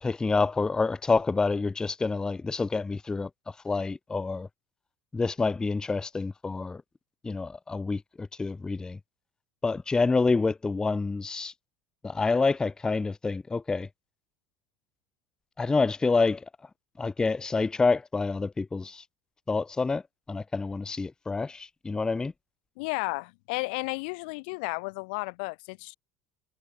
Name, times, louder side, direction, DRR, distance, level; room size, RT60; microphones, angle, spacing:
voice 1, 0.0-3.3 3.6-4.5 5.1-6.8 7.2-9.0 9.6-11.5 12.0-13.9 15.6-16.4 17.0-19.0 19.5-20.0 20.3-22.3, left 4 dB, 15° left, 0.3 m, -27 dB
voice 2, 22.8-25.9, left 29 dB, 75° left, 0.6 m, -33 dB
supercardioid pair, 95°, 5 cm